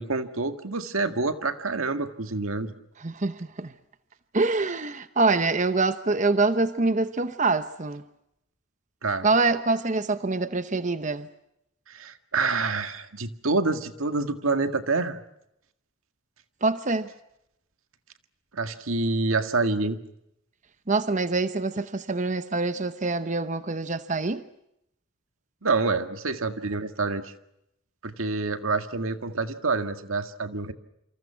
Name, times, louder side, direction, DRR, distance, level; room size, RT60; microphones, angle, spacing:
voice 1, 0.0-2.7 9.0-9.3 11.9-15.2 18.5-20.0 25.6-27.3 28.0-30.7, right 3 dB, 85° right, 1.9 m, -27 dB
voice 2, 3.0-3.7 4.3-8.0 9.2-11.3 16.6-17.1 20.9-24.4, right 3 dB, 35° right, 0.9 m, -25 dB
28.5 x 26.5 x 5.8 m
head